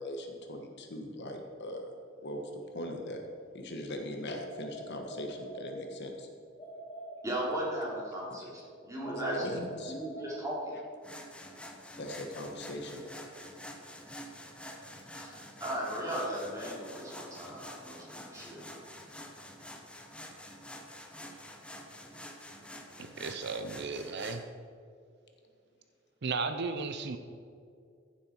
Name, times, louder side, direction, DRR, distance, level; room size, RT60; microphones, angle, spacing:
voice 1, 0.0-1.9 2.2-2.5 2.7-3.2 3.5-6.3 9.0-9.9 12.0-13.0, left 1 dB, 60° left, 4 dB, 1.4 m, -40 dB
sound 1, 4.3-6.1 6.6-8.5 9.0-10.9, right 1 dB, 25° left, 2.9 m, -45 dB
voice 2, 7.2-10.8 13.0-13.5 15.1-18.6, right 1 dB, 15° right, -5 dB, 3.2 m, -37 dB
sound 2, 11.0-24.4, left 1 dB, 5° left, 1.0 m, -47 dB
voice 3, 23.2-24.4 26.2-27.2, right 4 dB, 60° right, 8 dB, 0.6 m, -34 dB
15.0 x 7.4 x 4.6 m, 2.4 s
head